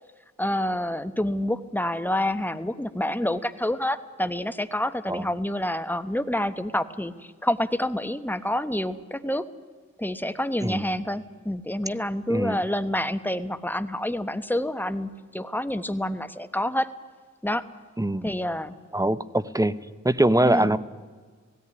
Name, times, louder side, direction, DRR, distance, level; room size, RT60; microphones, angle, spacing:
voice 1, 0.4-9.4 10.0-16.9 17.4-17.6 18.2-18.8 20.4-20.7, left 1 dB, 5° left, 11 dB, 1.2 m, -28 dB
voice 2, 12.3-12.6 18.0-18.3 18.9-19.7 20.0-20.8, right 1 dB, 10° right, 14 dB, 0.9 m, -23 dB
17.0 x 17.0 x 9.7 m, 1.5 s
cardioid pair, 65°, 29 cm